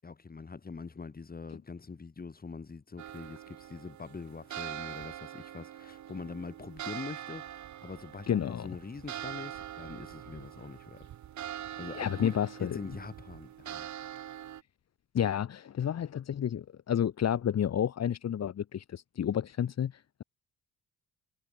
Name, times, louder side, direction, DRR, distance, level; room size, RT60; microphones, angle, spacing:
voice 1, 0.0-11.1 11.8-13.9, left 4 dB, 30° left, 7.2 m, -43 dB
sound 1, 3.0-14.6, right 11 dB, 70° right, 4.9 m, -43 dB
voice 2, 8.3-8.7 12.0-12.8 15.1-20.2, left 9 dB, 60° left, 3.0 m, -30 dB
cardioid pair, 90°, 30 cm